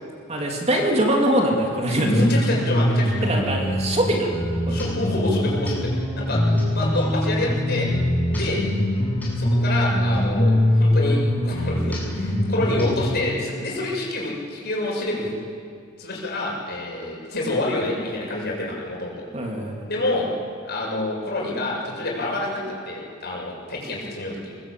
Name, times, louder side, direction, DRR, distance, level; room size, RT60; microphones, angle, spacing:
voice 1, 0.3-2.1 3.2-4.4 4.6-4.8 6.5-6.7 17.4-17.6 19.3-19.8, right 1 dB, 30° right, 0 dB, 3.1 m, -23 dB
voice 2, 1.9-3.3 4.7-7.9 8.3-8.6 9.4-15.3 16.0-19.2 19.8-20.3 20.6-24.5, left 2 dB, 50° left, -3 dB, 7.4 m, -27 dB
sound 1, 2.1-13.2, left 1 dB, 10° left, 8.0 m, -22 dB
24.5 x 20.0 x 8.7 m, 2.3 s
head